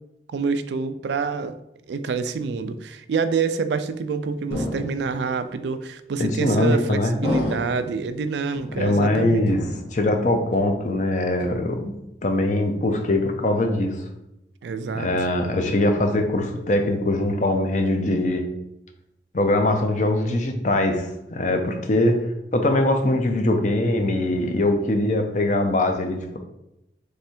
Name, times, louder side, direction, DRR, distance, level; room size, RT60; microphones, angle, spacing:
voice 1, 0.3-1.6 1.9-9.4 14.6-15.1, right 5 dB, 75° right, 10 dB, 0.4 m, -27 dB
sound 1, 4.5-5.4 6.2-6.7 7.2-8.0 8.5-9.1 9.5-10.2 10.5-11.0 11.4-12.0, left 1 dB, 60° left, 1.5 m, -31 dB
voice 2, 6.2-7.1 8.8-9.6 9.9-11.9 12.2-14.0 14.9-18.4 19.3-22.1 22.5-26.4, left 1 dB, 45° left, 4 dB, 0.6 m, -22 dB
3.4 x 3.3 x 4.3 m, 0.86 s
head